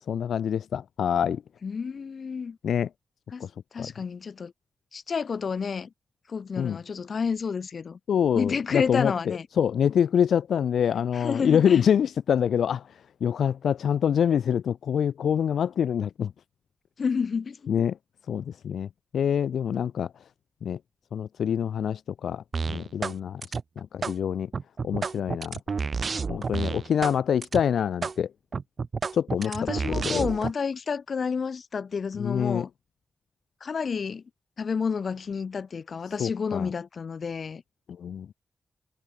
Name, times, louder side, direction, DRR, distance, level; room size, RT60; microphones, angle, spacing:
voice 1, 0.1-1.4 2.6-2.9 3.4-3.5 3.8-3.9 6.6-6.8 8.1-12.8 13.2-16.3 17.7-18.0 18.3-18.9 19.1-20.1 20.6-20.8 21.1-23.4 23.8-24.5 24.8-25.6 26.3-28.3 29.1-29.5 29.9-30.3 32.2-32.7 36.2-36.7 38.0-38.3, left 8 dB, 90° left, 3.0 m, -25 dB
voice 2, 1.6-2.6 3.3-3.5 3.7-4.5 4.9-5.9 6.3-8.0 8.3-9.5 10.9-11.8 17.0-17.7 29.4-32.7 33.6-34.2 34.6-37.6, left 5 dB, 65° left, 6.2 m, -30 dB
sound 1, 22.5-23.2 23.4-24.2 24.5-27.2 27.4-27.6 28.0-28.2 28.5-30.5, right 5 dB, 60° right, 5.2 m, -30 dB
cardioid pair, 55°, 0 cm